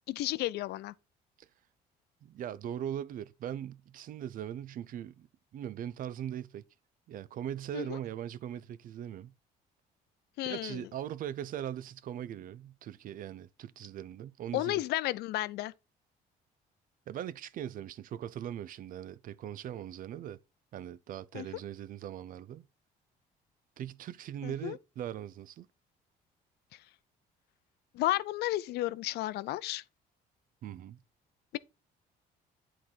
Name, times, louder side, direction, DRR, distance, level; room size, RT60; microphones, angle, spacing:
voice 1, 0.1-0.9 7.7-8.0 10.4-10.8 14.5-15.7 21.3-21.5 24.4-24.8 27.9-29.8, left 16 dB, 75° left, 0.5 m, -32 dB
voice 2, 2.2-5.3 5.5-6.7 7.1-9.3 10.4-14.8 17.1-20.4 20.7-22.7 23.8-25.7 30.6-31.0, right 10 dB, 55° right, 0.5 m, -40 dB
8.6 x 4.0 x 4.5 m
cardioid pair, 110°, 17 cm